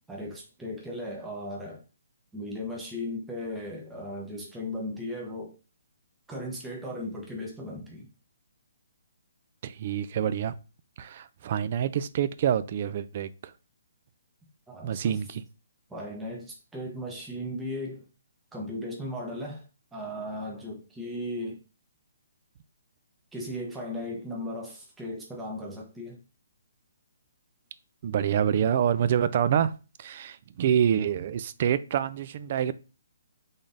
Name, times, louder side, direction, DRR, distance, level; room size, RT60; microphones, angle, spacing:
voice 1, 0.1-1.8 2.3-5.6 6.3-8.1 14.7-15.2 15.9-18.1 18.5-19.6 19.9-21.6 23.3-26.2, left 1 dB, 10° right, 0.8 m, -36 dB
voice 2, 9.6-10.5 11.0-13.5 14.8-15.4 28.0-29.7 30.0-32.7, right 9 dB, 45° right, 0.3 m, -26 dB
3.6 x 3.4 x 2.6 m
hypercardioid pair, 145°, 0 cm